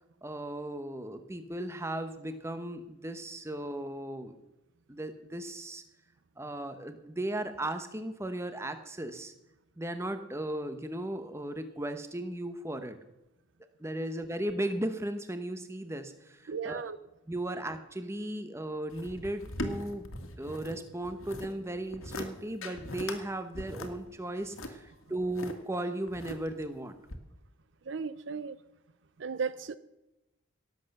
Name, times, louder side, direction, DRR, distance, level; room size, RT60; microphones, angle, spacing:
voice 1, 0.2-4.4 4.9-5.8 6.4-9.3 9.8-13.0 13.8-16.8 17.3-20.1 20.4-27.0, right 1 dB, 15° right, 1.0 m, -36 dB
voice 2, 16.5-17.0 27.8-28.6 29.2-29.8, right 5 dB, 60° right, 0.5 m, -35 dB
sound 1, 18.9-20.8 21.0-21.5 21.9-22.3 22.6-23.2 23.5-25.5 26.1-26.7 27.1-27.2, left 1 dB, 80° left, 1.8 m, -40 dB
18.0 x 8.0 x 6.6 m
head